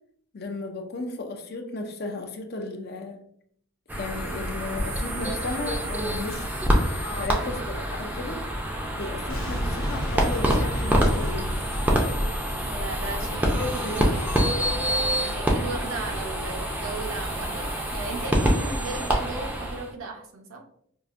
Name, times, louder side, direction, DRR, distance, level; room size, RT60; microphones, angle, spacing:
voice 1, 0.3-3.2 4.0-6.5 7.2-8.4 9.0-11.6 13.6-14.2 15.2-15.4, left 2 dB, 45° left, 5 dB, 0.4 m, -34 dB
sound 1, 3.9-19.9, equal, 10° right, 0.5 m, -26 dB
voice 2, 7.0-7.7 12.6-14.5 15.2-20.6, right 2 dB, 75° right, 3 dB, 0.7 m, -37 dB
Boom, 9.3-14.2, equal, 80° left, 0.8 m, -31 dB
4.7 x 2.5 x 2.4 m, 0.68 s
head